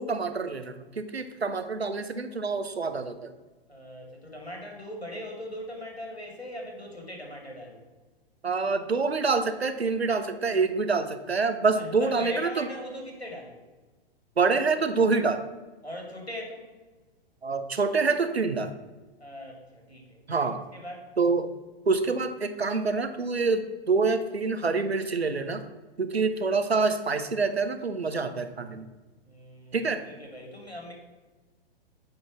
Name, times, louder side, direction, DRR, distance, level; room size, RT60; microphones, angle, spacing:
voice 1, 0.0-3.3 8.4-12.7 14.4-15.4 17.4-18.7 20.3-20.6 21.2-21.5 21.9-25.6 26.0-28.9 29.7-30.0, right 4 dB, 85° right, 9 dB, 0.8 m, -26 dB
voice 2, 3.7-7.8 11.7-13.6 15.8-16.7 19.2-21.1 29.2-30.9, left 1 dB, 90° left, 0 dB, 2.2 m, -40 dB
8.7 x 3.9 x 6.0 m, 1.3 s
figure-of-eight pair, 110°, 31 cm